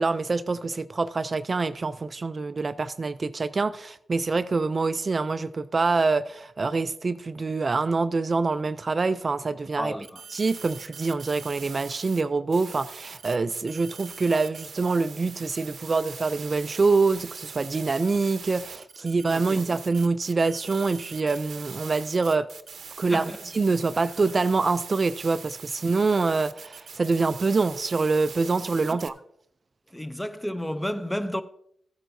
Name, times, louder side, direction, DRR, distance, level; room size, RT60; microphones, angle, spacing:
voice 1, 0.0-9.9 10.3-22.5 23.0-29.1, right 3 dB, 45° right, 0.4 m, -25 dB
voice 2, 9.7-10.2 19.3-19.4 23.1-23.5 24.0-24.1 28.9-29.0 29.9-31.4, equal, 10° left, 0.6 m, -32 dB
sound 1, 10.0-12.2 12.5-29.1, right 6 dB, 65° right, 0.7 m, -43 dB
14.5 x 9.0 x 2.7 m
cardioid pair, 65°, 0 cm